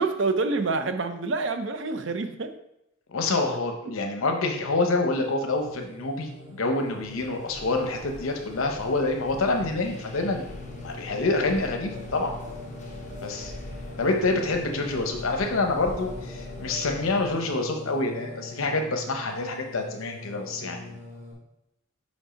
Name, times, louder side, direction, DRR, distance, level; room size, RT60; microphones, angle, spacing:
voice 1, 0.0-2.6, right 3 dB, 60° right, 9 dB, 0.6 m, -27 dB
voice 2, 3.1-10.4 10.8-12.3 13.2-13.5 14.0-20.9, left 3 dB, 80° left, 4 dB, 0.7 m, -27 dB
Singing, 4.2-21.3, left 2 dB, 15° right, 2.6 m, -42 dB
sound 1, 6.9-17.7, left 1 dB, 35° left, 0.8 m, -44 dB
5.2 x 4.6 x 5.0 m, 0.85 s
head